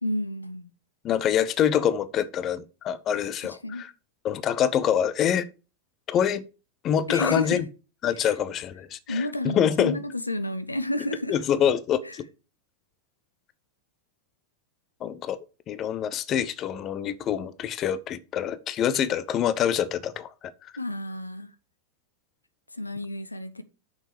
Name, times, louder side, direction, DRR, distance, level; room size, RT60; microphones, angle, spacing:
voice 1, 0.0-0.7 3.4-3.8 7.1-7.6 8.2-8.3 9.1-11.4 12.0-12.1 20.8-21.5 22.7-23.6, left 1 dB, 85° left, 0.7 m, -31 dB
voice 2, 1.0-3.9 4.2-5.5 6.1-6.4 6.8-7.7 8.0-10.0 11.3-12.3 15.0-15.4 15.7-20.3, left 9 dB, 30° left, 0.7 m, -25 dB
6.5 x 6.0 x 7.1 m
figure-of-eight pair, 90°, 0 cm